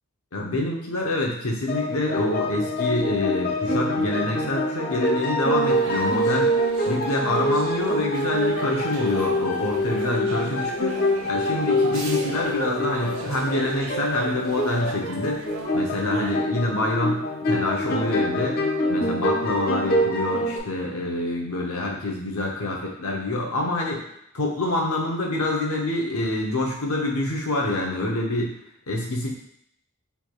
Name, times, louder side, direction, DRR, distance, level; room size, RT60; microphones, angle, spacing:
voice 1, 0.3-6.5 6.9-15.5 15.7-18.6 18.9-24.0 24.3-28.6 28.9-29.3, left 2 dB, 85° left, -1 dB, 0.9 m, -26 dB
sound 1, 1.7-20.6, equal, 45° left, 0.5 m, -25 dB
sound 2, 5.6-16.4, right 3 dB, 70° right, 0.6 m, -37 dB
4.5 x 3.4 x 2.4 m, 0.71 s
head